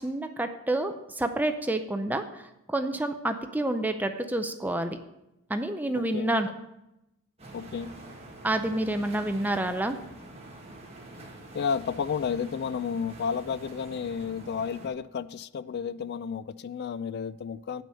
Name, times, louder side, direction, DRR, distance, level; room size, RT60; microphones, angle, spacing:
voice 1, 0.0-5.0 5.5-6.5 8.4-10.0, right 1 dB, 10° right, 0.5 m, -29 dB
voice 2, 6.0-6.3 7.5-7.9 11.5-17.8, left 6 dB, 50° left, 0.3 m, -32 dB
sound 1, 7.4-14.9, right 1 dB, 30° right, 1.4 m, -46 dB
8.6 x 6.1 x 5.5 m
head